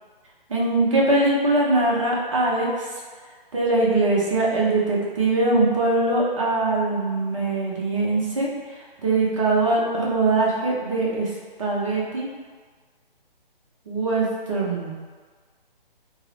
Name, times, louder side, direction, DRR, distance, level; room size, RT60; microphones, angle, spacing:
voice 1, 0.5-2.9 3.5-8.5 9.0-11.3 11.6-12.3 13.9-14.9, right 2 dB, 35° right, -4 dB, 0.6 m, -22 dB
4.4 x 2.0 x 3.2 m, 1.5 s
figure-of-eight pair, 140°, 29 cm